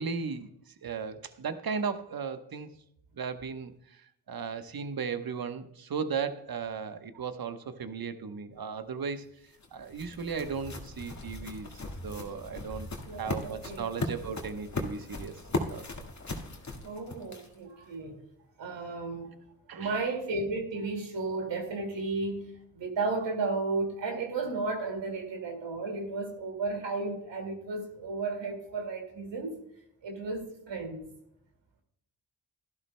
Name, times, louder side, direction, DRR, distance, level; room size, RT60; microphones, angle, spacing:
voice 1, 0.0-2.7 3.1-9.2 9.7-11.7 12.0-15.9 19.7-19.9, right 5 dB, 50° right, 1.1 m, -36 dB
sound 1, 9.2-17.7, left 2 dB, 40° left, 1.9 m, -38 dB
voice 2, 13.1-13.9 16.8-18.2 18.6-19.3 19.7-29.6 30.0-31.1, right 3 dB, 75° right, 2.4 m, -34 dB
12.5 x 12.0 x 2.2 m
supercardioid pair, 45°, 44 cm